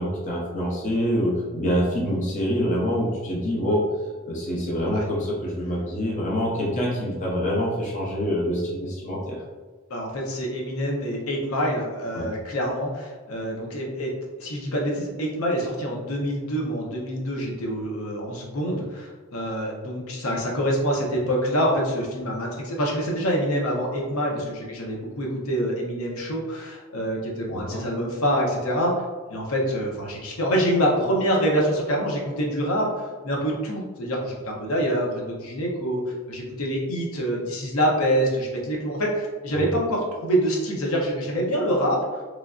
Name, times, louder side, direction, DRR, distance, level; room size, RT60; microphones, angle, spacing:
voice 1, 0.0-3.8 4.2-9.4 12.1-12.3 27.5-27.8 39.5-39.7, equal, 35° left, -4 dB, 0.6 m, -26 dB
voice 2, 9.9-14.1 14.4-29.0 29.3-42.0, equal, 85° left, -2 dB, 0.7 m, -26 dB
3.1 x 2.4 x 2.3 m, 1.4 s
head